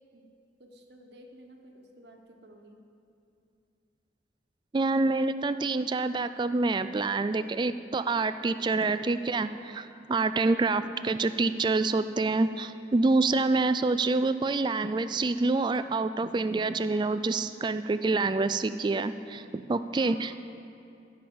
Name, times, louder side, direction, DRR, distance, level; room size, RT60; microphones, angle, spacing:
voice 1, 0.6-2.8 20.0-20.3, right 1 dB, 70° right, 3 dB, 1.2 m, -52 dB
voice 2, 4.7-20.3, right 3 dB, 25° right, 12 dB, 0.3 m, -27 dB
15.0 x 5.5 x 6.9 m, 2.6 s
head